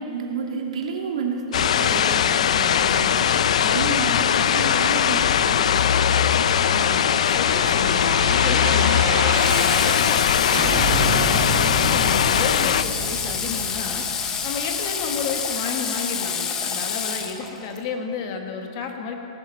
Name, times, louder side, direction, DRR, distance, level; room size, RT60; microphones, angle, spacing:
voice 1, 0.0-3.3 3.6-5.8, right 4 dB, 75° right, 0 dB, 2.6 m, -30 dB
sound 1, 1.5-12.8, left 8 dB, 80° left, 0.5 m, -20 dB
sound 2, 5.5-10.2 10.5-15.3 15.7-15.8, right 4 dB, 30° right, 1.8 m, -31 dB
voice 2, 6.7-10.3 10.6-19.2, left 5 dB, 35° left, 4 dB, 1.4 m, -32 dB
Water / Water tap faucet, 9.3-17.8, left 6 dB, 15° left, 0.9 m, -28 dB
18.0 x 9.6 x 7.6 m, 2.8 s
supercardioid pair, 175°, 3 cm